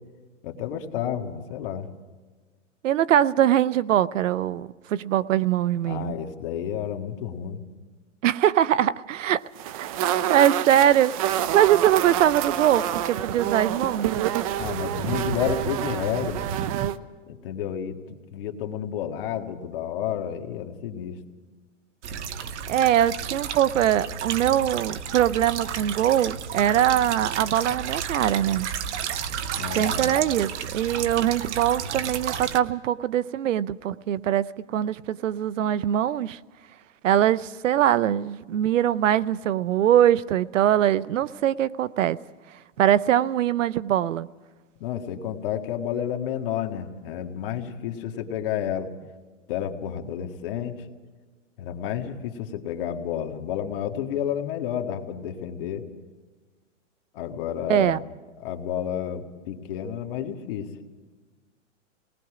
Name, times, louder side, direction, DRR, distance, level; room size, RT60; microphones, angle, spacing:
voice 1, 0.4-1.9 5.9-7.6 14.6-16.5 17.2-21.2 29.6-30.1 44.8-48.9 49.5-50.8 51.6-55.9 57.1-58.0 58.4-60.7, left 9 dB, 45° left, 1.9 m, -31 dB
voice 2, 2.8-6.1 8.2-9.4 9.8-9.9 10.3-14.1 22.7-28.7 29.8-36.4 37.0-42.2 42.8-44.3 57.7-58.0, right 11 dB, 85° right, 0.7 m, -22 dB
sound 1, 9.6-17.0, right 11 dB, 30° right, 0.5 m, -27 dB
sound 2, 22.0-32.6, right 8 dB, 65° right, 1.1 m, -32 dB
28.5 x 19.5 x 4.9 m
hypercardioid pair, 150°, 37 cm